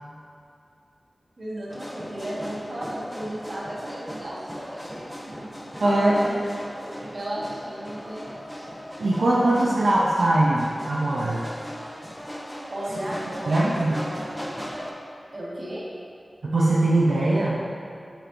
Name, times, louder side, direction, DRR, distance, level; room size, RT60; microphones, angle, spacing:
voice 1, 1.4-5.5 5.8-6.5 7.0-8.2 8.5-8.7 9.6-9.9 12.7-14.2 14.6-14.8 15.3-15.8, right 1 dB, 55° right, -7 dB, 1.5 m, -34 dB
sound 1, 1.7-14.9, equal, 5° left, 0.6 m, -38 dB
voice 2, 5.8-6.3 9.0-11.4 13.5-14.0 16.4-17.6, right 1 dB, 85° right, -6 dB, 0.6 m, -21 dB
7.4 x 5.1 x 2.6 m, 2.6 s
wide cardioid pair, 70°, 0 cm